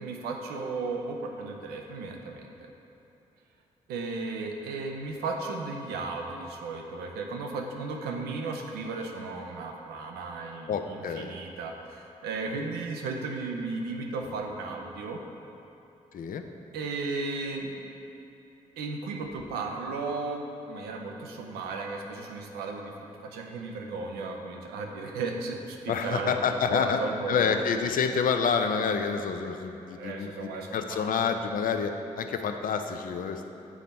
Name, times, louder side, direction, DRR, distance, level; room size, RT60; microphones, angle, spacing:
voice 1, 0.0-2.5 3.9-15.2 16.7-17.7 18.8-26.3 26.7-27.6 29.9-31.5, right 3 dB, 90° right, 2 dB, 0.5 m, -35 dB
voice 2, 10.7-11.4 16.1-16.4 25.9-27.0 27.3-33.5, left 6 dB, 65° left, 7 dB, 0.5 m, -28 dB
7.1 x 4.0 x 4.3 m, 2.9 s
hypercardioid pair, 40°, 16 cm